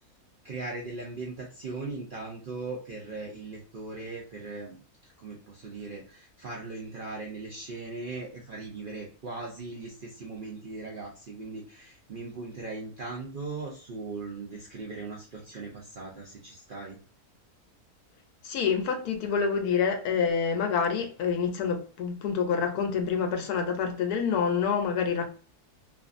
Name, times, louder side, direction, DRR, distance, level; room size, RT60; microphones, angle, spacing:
voice 1, 0.4-4.8 5.2-17.0, right 3 dB, 80° right, 0.4 m, -39 dB
voice 2, 18.4-25.3, left 6 dB, 80° left, 1.1 m, -27 dB
2.6 x 2.5 x 2.4 m
omnidirectional pair, 1.6 m